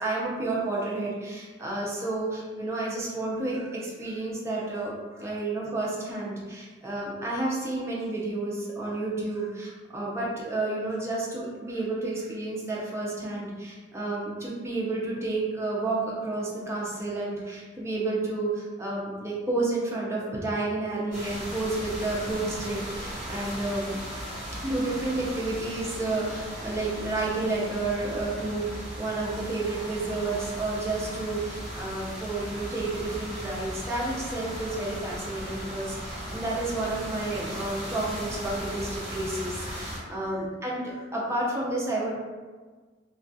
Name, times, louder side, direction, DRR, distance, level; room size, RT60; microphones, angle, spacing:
voice 1, 0.0-24.0 24.6-42.1, right 2 dB, 15° right, -5 dB, 0.5 m, -31 dB
sound 1, 21.1-40.0, equal, 5° left, 1.1 m, -37 dB
2.3 x 2.3 x 2.6 m, 1.4 s
head